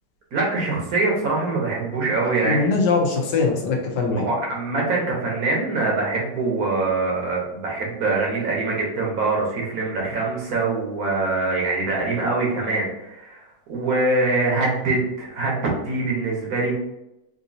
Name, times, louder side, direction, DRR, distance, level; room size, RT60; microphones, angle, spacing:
voice 1, 0.3-2.8 4.2-16.7, right 3 dB, 60° right, -2 dB, 1.2 m, -24 dB
voice 2, 2.2-4.3, left 4 dB, 80° left, 1 dB, 1.4 m, -22 dB
3.9 x 2.6 x 2.6 m, 0.90 s
omnidirectional pair, 1.9 m